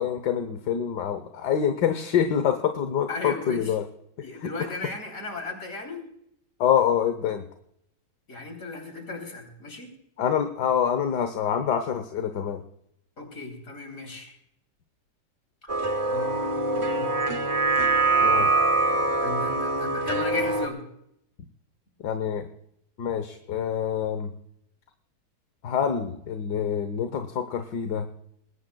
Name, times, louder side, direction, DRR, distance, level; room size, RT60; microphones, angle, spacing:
voice 1, 0.0-3.8 4.4-4.5 6.6-7.4 10.2-12.6 18.2-18.5 22.0-22.5 23.0-24.3 25.6-28.1, left 8 dB, 70° left, 8 dB, 1.6 m, -26 dB
voice 2, 3.1-3.7 4.2-6.0 8.3-9.9 13.2-14.4 15.6-15.7 16.1-17.1 18.9-20.8, left 3 dB, 50° left, 3 dB, 3.7 m, -35 dB
sound 1, 15.7-20.7, right 3 dB, 35° right, 0.5 m, -24 dB
20.5 x 19.0 x 2.3 m, 0.75 s
omnidirectional pair, 1.9 m